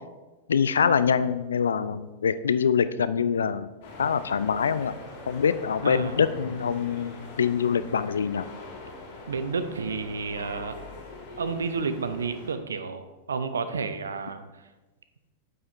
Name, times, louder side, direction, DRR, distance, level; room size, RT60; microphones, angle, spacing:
voice 1, 0.5-3.7 4.0-5.0 5.3-8.5, left 7 dB, 70° left, 15 dB, 0.3 m, -24 dB
sound 1, 3.8-12.5, left 2 dB, 50° left, 1.9 m, -43 dB
voice 2, 5.8-6.3 9.3-10.9 11.4-14.4, right 5 dB, 70° right, 11 dB, 0.5 m, -31 dB
9.0 x 6.4 x 3.0 m, 1.2 s
figure-of-eight pair, 90°, 0 cm